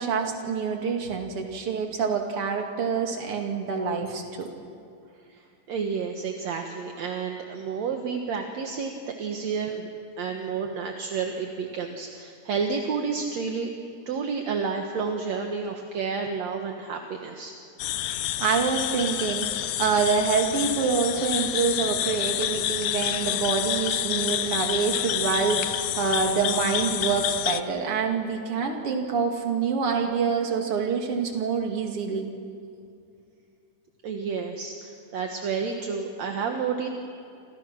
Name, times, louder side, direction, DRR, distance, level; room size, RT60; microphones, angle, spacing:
voice 1, 0.0-4.5 18.4-32.3, right 5 dB, 50° right, 2 dB, 3.1 m, -26 dB
voice 2, 5.7-9.9 10.2-13.7 14.1-17.6 34.0-36.9, right 5 dB, 65° right, 3 dB, 2.6 m, -30 dB
sound 1, 17.8-27.6, left 12 dB, 75° left, 2.0 m, -28 dB
29.0 x 26.0 x 6.1 m, 2.6 s
omnidirectional pair, 3.4 m